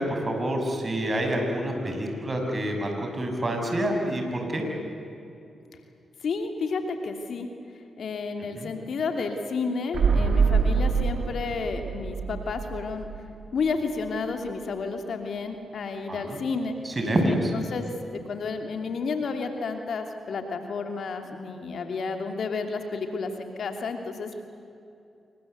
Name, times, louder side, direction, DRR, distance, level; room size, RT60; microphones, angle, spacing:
voice 1, 0.0-4.6 8.5-8.7 16.1-16.4 16.8-17.5, right 1 dB, 40° right, 2 dB, 6.8 m, -27 dB
voice 2, 6.2-7.5 8.0-13.1 13.5-16.8 17.3-17.9 18.3-24.3, left 4 dB, 70° left, 5 dB, 2.8 m, -31 dB
sound 1, 9.9-13.7 13.9-14.0, right 5 dB, 70° right, 1.8 m, -25 dB
27.5 x 24.0 x 8.1 m, 2.6 s
supercardioid pair, 40°, 0 cm